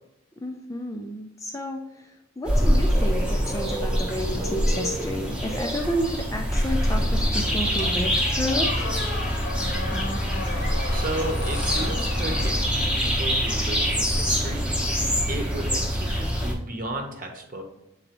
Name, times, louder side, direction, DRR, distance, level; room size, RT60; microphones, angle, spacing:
voice 1, 0.4-1.8 2.4-8.9, equal, 15° left, 3 dB, 0.4 m, -31 dB
sound 1, 2.5-16.5, equal, 5° right, 0.8 m, -25 dB
Squeak, 7.8-13.3, left 2 dB, 55° left, 0.9 m, -34 dB
voice 2, 9.6-10.3 10.9-14.6 15.3-17.6, right 1 dB, 40° right, 3 dB, 1.0 m, -34 dB
7.9 x 4.1 x 3.0 m, 0.90 s
head